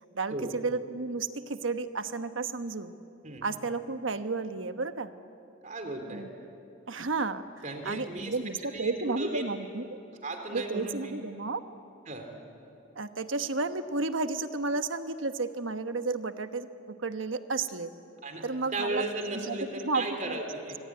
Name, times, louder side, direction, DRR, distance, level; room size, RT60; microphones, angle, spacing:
voice 1, 0.1-2.9 3.4-5.1 6.1-6.3 6.9-9.8 10.5-11.6 13.0-17.9 18.4-19.1 19.4-19.6 19.8-20.4, right 3 dB, 80° right, 9 dB, 1.2 m, -32 dB
voice 2, 5.6-6.2 7.6-8.3 8.7-9.4 10.2-10.9 12.1-12.3 18.2-20.8, right 2 dB, 40° right, 4 dB, 3.6 m, -35 dB
26.0 x 23.0 x 9.6 m, 2.7 s
head